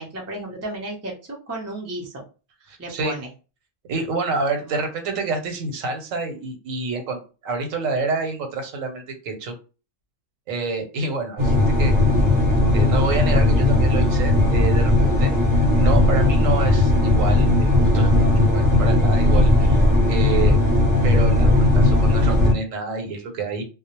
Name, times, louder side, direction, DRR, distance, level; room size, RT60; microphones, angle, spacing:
voice 1, 0.0-2.2 2.8-3.3 4.7-4.8, right 1 dB, 25° right, -2 dB, 0.3 m, -33 dB
voice 2, 2.7-3.1 3.9-9.5 10.5-12.0 12.7-15.3 15.8-20.7 21.0-23.6, right 3 dB, 85° right, 5 dB, 1.1 m, -28 dB
sound 1, 11.4-22.5, left 2 dB, 40° right, 0.7 m, -17 dB
2.3 x 2.0 x 2.8 m, 0.33 s
omnidirectional pair, 1.3 m